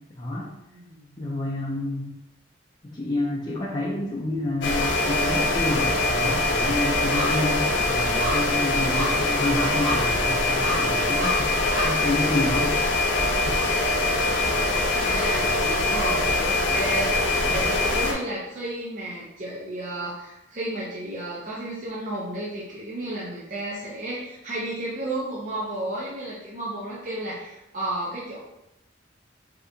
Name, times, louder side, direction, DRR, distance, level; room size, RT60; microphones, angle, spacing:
voice 1, 0.2-0.5 1.2-2.1 2.8-11.5 11.8-12.7, left 2 dB, 25° left, -6 dB, 0.5 m, -29 dB
voice 2, 0.7-1.2 14.8-28.4, right 1 dB, 45° right, -7 dB, 0.6 m, -33 dB
sound 1, 4.1-4.9 5.2-15.2 15.5-15.6, equal, 85° right, 1.3 m, -35 dB
sound 2, 4.6-18.1, left 2 dB, 85° left, 0.6 m, -23 dB
3.2 x 2.8 x 2.6 m, 0.87 s
head